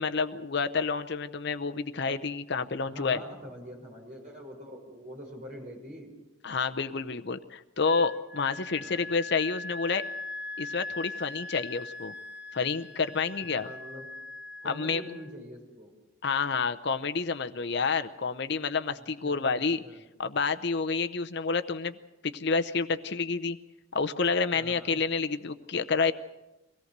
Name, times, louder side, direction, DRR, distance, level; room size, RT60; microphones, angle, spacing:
voice 1, 0.0-3.2 6.4-10.0 10.6-12.1 12.5-13.7 14.6-15.0 16.2-19.8 20.2-22.0 22.2-23.6 23.9-26.1, left 4 dB, 55° left, 9 dB, 0.7 m, -29 dB
voice 2, 2.8-6.1 8.7-9.1 13.5-14.1 14.6-15.9 19.2-20.0 24.5-25.0, equal, 40° right, 0 dB, 5.7 m, -44 dB
Wind instrument woodwind instrument, 7.8-15.3, left 3 dB, 5° right, 0.8 m, -41 dB
24.0 x 17.5 x 6.7 m, 0.99 s
head